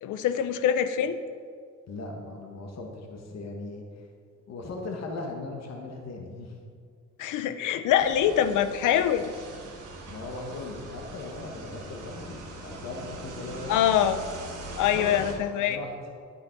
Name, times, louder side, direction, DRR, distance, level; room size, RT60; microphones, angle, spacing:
voice 1, 0.0-1.2 7.2-9.3 13.7-14.2 14.8-15.8, left 10 dB, 85° left, 11 dB, 0.7 m, -24 dB
voice 2, 1.9-4.1 4.5-6.6 10.1-14.0 14.8-15.3 15.6-15.9, left 3 dB, 60° left, 1 dB, 1.6 m, -38 dB
sound 1, 8.0-15.3, right 2 dB, 85° right, 3.0 m, -41 dB
10.0 x 8.8 x 4.6 m, 2.1 s
cardioid pair, 90°, 30 cm